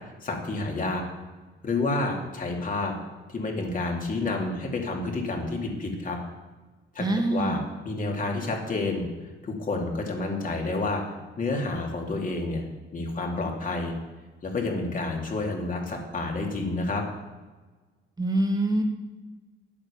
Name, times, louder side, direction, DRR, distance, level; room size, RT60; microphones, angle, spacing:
voice 1, 0.2-1.0 1.6-2.9 3.3-6.2 6.9-7.1 7.3-9.1 9.4-11.0 11.4-12.6 12.9-13.9 14.4-17.0, left 2 dB, 40° left, 1 dB, 3.0 m, -29 dB
voice 2, 7.0-7.6 18.2-18.8, right 1 dB, 20° right, 3 dB, 1.7 m, -24 dB
9.3 x 8.8 x 7.2 m, 1.3 s
cardioid pair, 90°, 20 cm